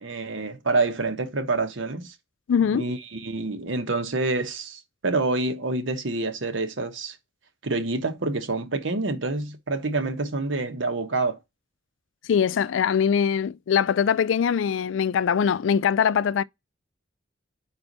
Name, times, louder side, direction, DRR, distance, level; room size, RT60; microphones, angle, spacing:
voice 1, 0.0-2.1 2.7-7.2 7.6-11.4, right 3 dB, 85° right, 1.2 m, -27 dB
voice 2, 2.5-2.9 12.3-16.4, left 7 dB, 85° left, 0.4 m, -22 dB
4.5 x 4.2 x 5.3 m
head